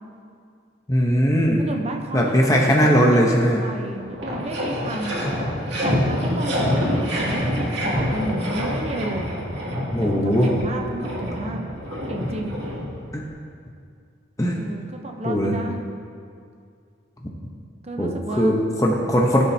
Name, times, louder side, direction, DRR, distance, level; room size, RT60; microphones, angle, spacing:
voice 1, 0.9-1.6 2.1-3.6 9.9-10.5 13.1-13.2 14.4-14.6 15.2-15.6 17.2-17.3 18.0-19.4, equal, 15° left, -1 dB, 0.9 m, -19 dB
voice 2, 1.6-5.2 5.8-9.3 10.1-11.6 12.1-12.6 14.4-15.9 17.8-18.6, right 1 dB, 35° right, 3 dB, 0.8 m, -32 dB
sound 1, 3.9-13.3, equal, 60° right, 2.4 m, -26 dB
17.0 x 7.3 x 2.8 m, 2.3 s
head